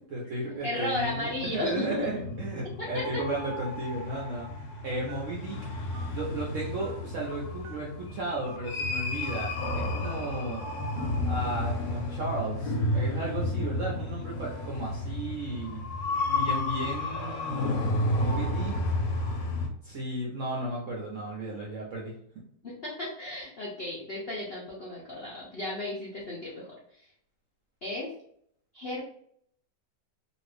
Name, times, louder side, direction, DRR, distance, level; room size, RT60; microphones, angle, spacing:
voice 1, 0.0-4.5 4.8-5.6 6.1-10.6 11.2-15.8 16.2-18.8 19.8-22.1, right 2 dB, 65° right, -3 dB, 0.8 m, -34 dB
voice 2, 0.6-2.1 2.8-3.2 16.3-16.8 22.6-26.7 27.8-28.1 28.7-29.0, left 2 dB, 70° left, -5 dB, 0.5 m, -34 dB
sound 1, 1.0-19.7, left 1 dB, 85° left, 1.3 m, -32 dB
Telephone, 3.3-3.6 4.1-4.3 5.1-5.5 5.9-6.1 6.8-7.0 7.6-7.8 8.4-8.6 9.2-9.3 10.0-10.3 11.0-11.2, right 4 dB, 85° right, 1.3 m, -46 dB
2.8 x 2.5 x 3.2 m, 0.66 s
omnidirectional pair, 1.9 m